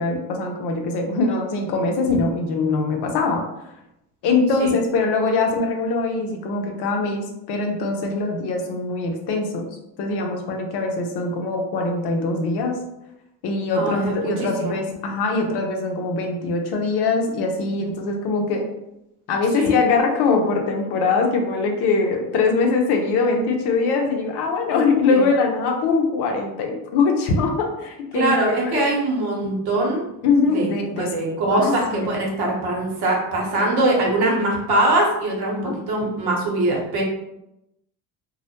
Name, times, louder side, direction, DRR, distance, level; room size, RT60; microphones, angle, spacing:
voice 1, 0.0-3.4 4.2-12.8 13.4-18.6 19.3-28.8 30.2-31.1 31.5-32.2 33.5-33.7 35.6-35.7, left 3 dB, 60° left, 3 dB, 0.7 m, -22 dB
voice 2, 13.7-14.8 19.5-19.7 25.1-25.2 28.1-30.0 30.5-30.7 31.0-37.0, right 2 dB, 55° right, -2 dB, 1.0 m, -22 dB
2.3 x 2.0 x 2.8 m, 0.86 s
hypercardioid pair, 65°, 46 cm